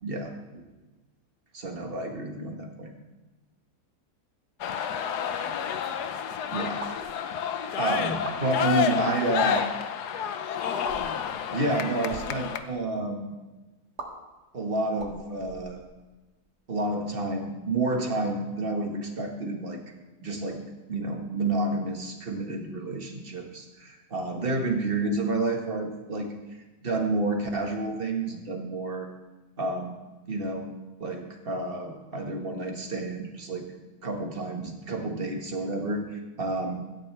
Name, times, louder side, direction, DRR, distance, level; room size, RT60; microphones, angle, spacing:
voice 1, 0.0-0.6 1.5-2.9 6.5-6.8 7.7-9.7 11.5-13.3 14.5-15.8 16.7-19.8 20.2-20.6 20.9-26.3 26.8-29.1 29.6-29.9 30.3-30.7 31.0-33.6 34.0-36.8, right 2 dB, 35° right, 2 dB, 1.8 m, -30 dB
sound 1, 4.6-12.6, left 8 dB, 80° left, 1.3 m, -30 dB
sound 2, 6.8-7.1 8.1-8.4 9.4-9.7 10.8-11.2 12.0-12.3 14.0-14.1 14.9-16.1, right 3 dB, 90° right, 2.2 m, -40 dB
17.0 x 13.0 x 3.4 m, 1.1 s
omnidirectional pair, 1.7 m